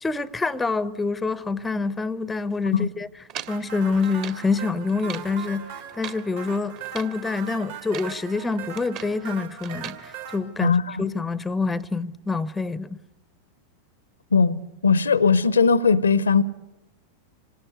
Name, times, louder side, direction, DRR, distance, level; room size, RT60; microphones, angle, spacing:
voice 1, 0.0-3.1 3.5-13.0, left 4 dB, 10° left, 0.8 m, -26 dB
sound 1, 3.3-4.5 4.9-5.3 5.8-6.3 6.8-7.2 7.7-8.2 8.5-9.2 9.6-10.0, right 9 dB, 40° right, 1.9 m, -39 dB
sound 2, 3.5-10.4, right 8 dB, 60° right, 4.2 m, -39 dB
voice 2, 10.6-11.0 14.3-16.4, left 5 dB, 75° left, 0.9 m, -19 dB
26.5 x 19.0 x 9.6 m
figure-of-eight pair, 90°, 0 cm